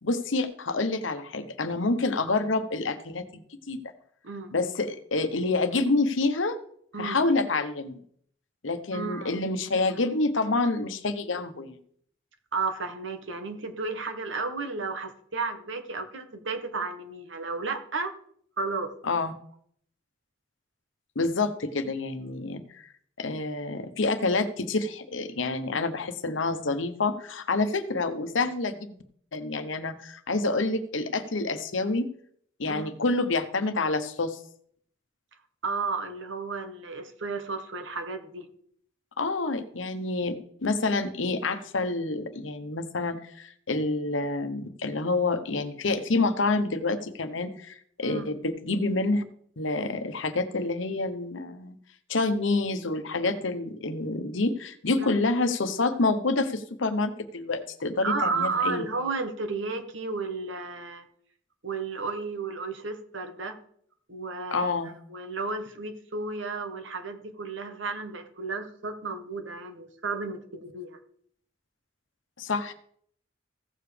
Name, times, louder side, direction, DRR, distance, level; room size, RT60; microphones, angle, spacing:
voice 1, 0.0-3.2 3.7-3.8 4.5-6.6 7.0-8.0 8.6-11.8 19.0-19.3 21.1-22.9 23.2-29.0 29.3-32.1 32.6-34.4 39.2-40.3 40.6-49.2 49.6-51.8 52.1-58.8 64.5-64.9 72.4-72.7, left 3 dB, 80° left, 9 dB, 1.0 m, -28 dB
voice 2, 8.9-9.3 12.5-18.1 18.6-18.9 32.7-32.9 35.6-38.5 48.0-48.2 55.0-55.2 58.0-61.1 61.6-63.6 64.1-64.7 65.1-71.0, right 4 dB, 75° right, 6 dB, 1.3 m, -33 dB
15.5 x 7.0 x 3.4 m, 0.63 s
head